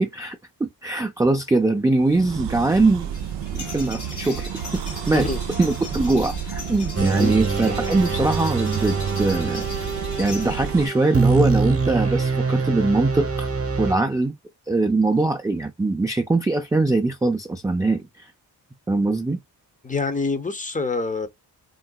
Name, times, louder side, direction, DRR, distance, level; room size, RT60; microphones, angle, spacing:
voice 1, 0.0-3.1 3.5-5.3 5.6-9.9 10.2-13.5 13.8-14.3 14.7-18.3 18.9-19.4, right 2 dB, 10° right, 0.4 m, -22 dB
sound 1, 2.0-10.9, right 9 dB, 85° right, 0.5 m, -32 dB
sound 2, 3.0-10.8, left 2 dB, 80° left, 1.7 m, -37 dB
sound 3, 7.0-13.9, right 4 dB, 35° right, 0.9 m, -24 dB
voice 2, 19.8-21.3, left 3 dB, 20° left, 0.7 m, -26 dB
3.8 x 2.2 x 2.2 m
cardioid pair, 75°, 40 cm